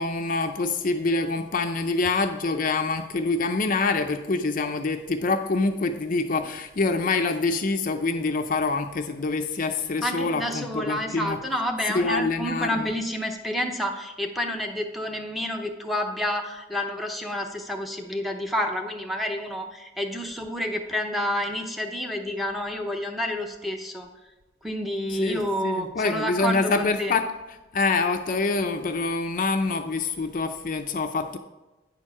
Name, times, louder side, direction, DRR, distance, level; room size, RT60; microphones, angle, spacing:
voice 1, 0.0-11.4 11.9-12.9 25.1-31.4, left 3 dB, 45° left, 6 dB, 0.5 m, -26 dB
voice 2, 10.0-24.1 24.6-27.1, left 1 dB, ahead, 1 dB, 0.7 m, -29 dB
9.2 x 4.5 x 6.0 m, 1.1 s
head